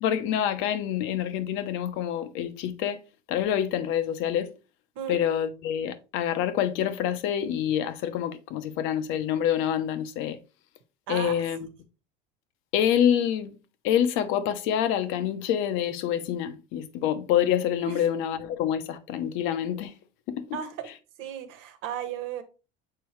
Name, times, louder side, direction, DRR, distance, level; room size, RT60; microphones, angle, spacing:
voice 1, 0.0-3.0 3.3-4.5 5.1-10.4 11.1-11.7 12.7-13.6 13.8-19.9 20.3-20.6, left 10 dB, 75° left, 0.8 m, -27 dB
voice 2, 11.1-11.4 17.9-18.0 20.5-20.9 21.2-22.4, right 9 dB, 75° right, 1.3 m, -35 dB
6.7 x 4.5 x 3.1 m
cardioid pair, 125°, 21 cm